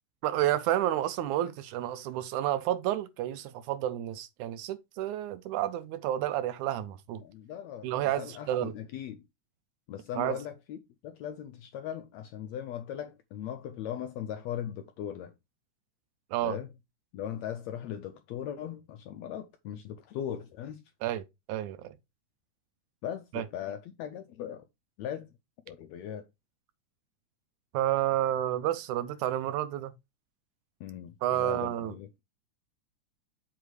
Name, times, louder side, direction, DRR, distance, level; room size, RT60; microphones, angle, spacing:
voice 1, 0.2-7.2 7.8-8.7 10.2-10.4 16.3-16.6 21.0-22.0 23.3-23.4 27.7-29.9 31.2-32.0, right 12 dB, 80° right, 1.9 m, -30 dB
voice 2, 7.2-7.9 8.2-9.2 9.9-10.8 11.0-15.3 16.4-16.7 17.1-20.8 23.0-24.6 25.0-25.3 25.7-26.2 30.8-32.2, left 10 dB, 85° left, 1.6 m, -39 dB
8.0 x 3.6 x 4.8 m
omnidirectional pair, 3.7 m